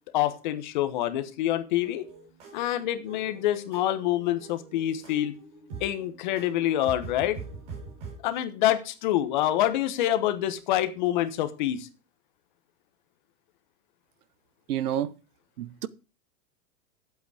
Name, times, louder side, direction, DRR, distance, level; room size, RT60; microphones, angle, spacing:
voice 1, 0.1-2.1 2.5-5.3 5.8-7.4 8.2-11.9, left 12 dB, 30° left, 1.1 m, -26 dB
sound 1, 1.8-8.2, right 5 dB, 40° right, 4.9 m, -44 dB
voice 2, 14.7-15.1 15.6-15.9, right 11 dB, 80° right, 1.0 m, -29 dB
11.0 x 8.2 x 4.9 m
supercardioid pair, 170°, 45 cm